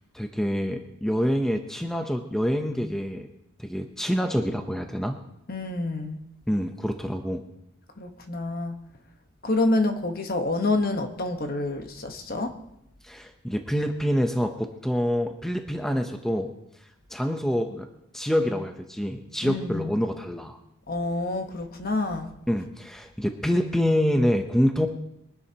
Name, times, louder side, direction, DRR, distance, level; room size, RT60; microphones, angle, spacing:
voice 1, 0.1-3.3 3.6-5.2 6.5-7.4 13.0-16.5 17.1-17.9 18.1-20.6 22.5-24.9, equal, ahead, 4 dB, 0.7 m, -26 dB
voice 2, 5.5-6.2 8.0-8.7 9.4-12.5 19.4-19.9 20.9-22.3, left 2 dB, 45° left, 6 dB, 1.2 m, -27 dB
23.5 x 11.0 x 2.9 m, 0.81 s
head